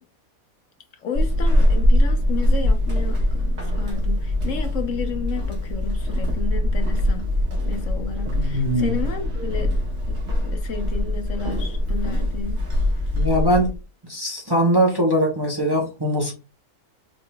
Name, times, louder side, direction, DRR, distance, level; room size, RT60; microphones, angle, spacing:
voice 1, 1.0-7.3 7.6-9.7 10.1-12.6, left 5 dB, 65° left, 1.0 m, -32 dB
Walk footsteps / Squeak, 1.1-13.8, left 1 dB, 50° right, 1.7 m, -22 dB
voice 2, 8.3-9.0 13.1-13.7 14.1-16.3, equal, 20° right, 0.9 m, -21 dB
4.9 x 3.7 x 2.2 m
omnidirectional pair, 1.5 m